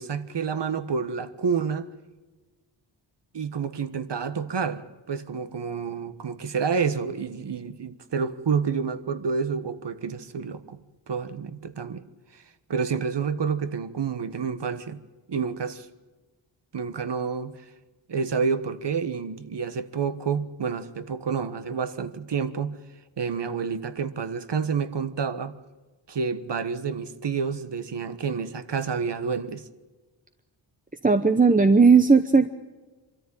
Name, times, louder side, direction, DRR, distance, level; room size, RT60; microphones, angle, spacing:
voice 1, 0.0-1.9 3.3-10.8 11.1-12.0 12.3-12.4 12.7-15.0 15.3-15.9 16.7-17.5 18.1-22.8 23.2-25.6 26.1-29.6, right 5 dB, 60° right, 1.4 m, -29 dB
voice 2, 31.0-32.5, right 4 dB, 15° right, 0.9 m, -17 dB
24.5 x 13.5 x 9.0 m
cardioid pair, 70°, 48 cm